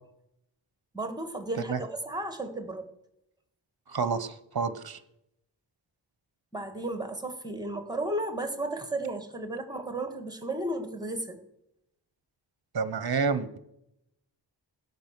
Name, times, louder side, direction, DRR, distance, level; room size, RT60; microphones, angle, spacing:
voice 1, 0.9-2.9 6.5-11.4, right 1 dB, 10° right, 7 dB, 1.7 m, -34 dB
voice 2, 3.9-5.0 12.7-13.6, right 5 dB, 55° right, 13 dB, 0.8 m, -29 dB
16.5 x 5.6 x 6.0 m, 0.81 s
wide cardioid pair, 50°, 46 cm